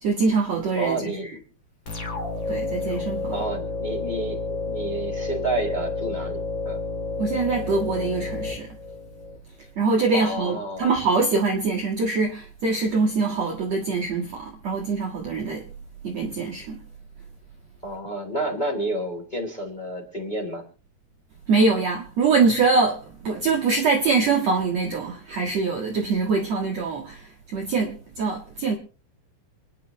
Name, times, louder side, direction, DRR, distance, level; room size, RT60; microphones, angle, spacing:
voice 1, 0.0-1.1 2.5-3.3 7.2-8.7 9.8-15.6 16.0-16.8 21.5-28.8, right 4 dB, 55° right, 2.2 m, -24 dB
voice 2, 0.8-1.4 3.3-6.8 10.1-10.9 17.8-20.6, right 2 dB, 10° left, 2.9 m, -30 dB
sound 1, 1.9-9.4, left 3 dB, 30° left, 3.0 m, -30 dB
28.5 x 10.5 x 3.0 m
omnidirectional pair, 4.8 m